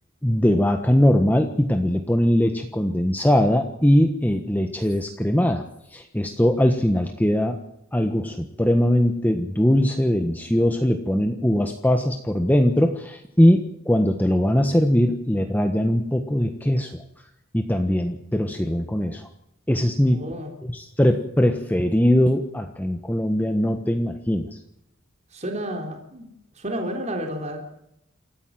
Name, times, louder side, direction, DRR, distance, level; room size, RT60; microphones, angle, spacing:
voice 1, 0.2-5.6 5.9-7.6 7.9-17.0 17.5-19.3 19.7-20.3 20.6-24.5, equal, 10° left, 5 dB, 1.4 m, -21 dB
voice 2, 20.1-20.5 25.3-26.3 26.6-27.6, equal, 35° right, 2 dB, 3.6 m, -31 dB
28.0 x 14.5 x 7.7 m, 0.79 s
head